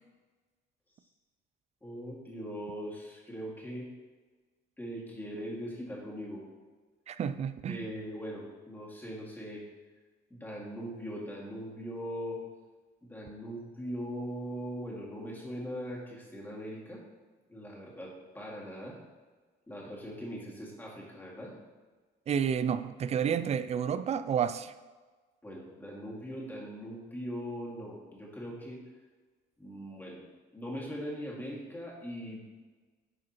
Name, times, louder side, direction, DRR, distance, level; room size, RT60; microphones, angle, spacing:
voice 1, 1.8-3.9 4.8-6.4 7.7-9.6 10.3-12.4 13.0-17.0 17.5-19.0 19.7-21.5 25.4-28.8 29.6-30.2 30.5-32.4, equal, 10° left, -5 dB, 2.1 m, -40 dB
voice 2, 7.1-7.9 22.3-24.7, right 8 dB, 40° right, 13 dB, 0.4 m, -30 dB
9.6 x 5.0 x 3.0 m, 1.4 s
cardioid pair, 105°, 18 cm